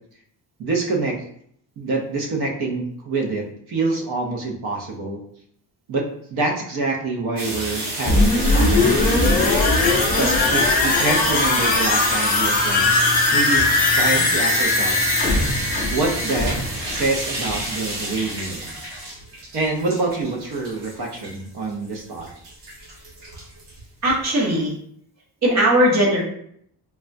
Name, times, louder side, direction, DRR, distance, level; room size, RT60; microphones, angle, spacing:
voice 1, 0.6-1.2 1.8-5.2 5.9-12.9 13.3-15.2 15.9-16.5 16.9-18.7 19.5-22.3, right 3 dB, 65° right, 1 dB, 0.8 m, -26 dB
sound 1, 7.4-24.2, right 1 dB, 80° right, 1.2 m, -31 dB
sound 2, 8.1-17.8 18.1-18.2, left 2 dB, 20° left, 0.4 m, -19 dB
voice 2, 24.0-24.8 25.4-26.3, right 1 dB, 40° right, -2 dB, 0.8 m, -18 dB
3.4 x 2.2 x 2.6 m, 0.66 s
wide cardioid pair, 165°, 42 cm